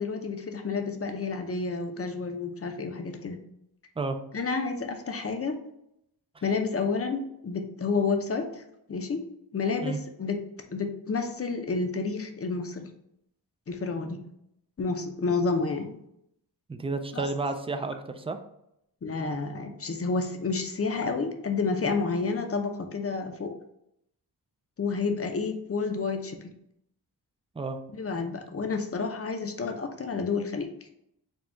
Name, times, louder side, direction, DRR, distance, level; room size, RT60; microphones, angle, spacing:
voice 1, 0.0-3.4 4.3-5.6 6.4-8.6 8.9-9.2 9.5-10.4 10.7-12.9 13.7-14.2 14.8-15.9 17.1-17.2 19.0-23.5 24.8-26.4 27.9-30.7, left 4 dB, 35° left, 5 dB, 0.6 m, -30 dB
voice 2, 16.7-18.4 27.5-27.8, right 3 dB, 15° right, 7 dB, 0.3 m, -31 dB
4.3 x 2.3 x 4.4 m, 0.78 s
wide cardioid pair, 130°, 41 cm